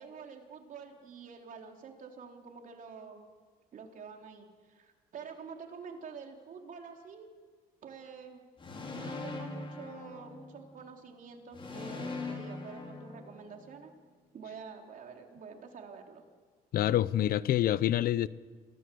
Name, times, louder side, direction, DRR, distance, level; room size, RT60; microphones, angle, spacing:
voice 1, 0.0-3.2 3.7-7.3 7.8-8.4 9.0-13.9 14.3-16.2, right 5 dB, 50° right, 3.8 m, -47 dB
sound 1, 8.6-10.8 11.5-13.7, left 3 dB, 30° left, 4.7 m, -41 dB
voice 2, 16.7-18.3, left 12 dB, 60° left, 0.7 m, -27 dB
28.0 x 18.0 x 7.8 m
cardioid pair, 110°, 17 cm